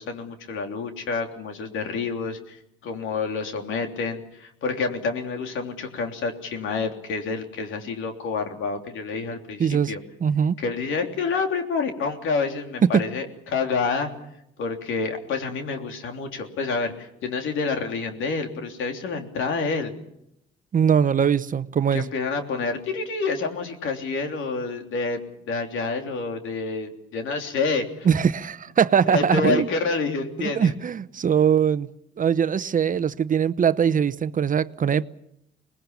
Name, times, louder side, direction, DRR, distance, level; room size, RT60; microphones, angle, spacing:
voice 1, 0.0-10.0 10.6-14.1 14.6-19.9 21.9-25.2 25.5-28.1 29.1-30.7, left 4 dB, 80° left, 3.3 m, -28 dB
voice 2, 9.6-9.9 10.2-10.6 12.9-13.0 20.7-22.1 28.1-29.7 30.4-31.9 32.2-35.1, right 7 dB, 40° right, 0.9 m, -21 dB
26.0 x 20.5 x 7.1 m
cardioid pair, 90°, 20 cm